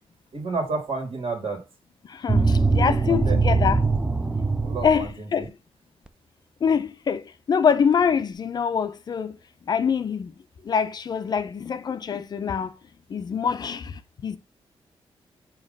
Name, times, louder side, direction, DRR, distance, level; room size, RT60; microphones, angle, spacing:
voice 1, 0.3-1.6 2.7-3.4 4.6-5.5, right 3 dB, 65° right, 2.1 m, -31 dB
voice 2, 2.1-3.9 4.8-5.5 6.6-9.4 9.7-10.3 10.6-12.7 13.1-14.4, left 6 dB, 45° left, 0.5 m, -25 dB
sound 1, 2.3-5.1, right 3 dB, 10° right, 0.4 m, -22 dB
7.3 x 2.9 x 5.3 m
wide cardioid pair, 175°, 10 cm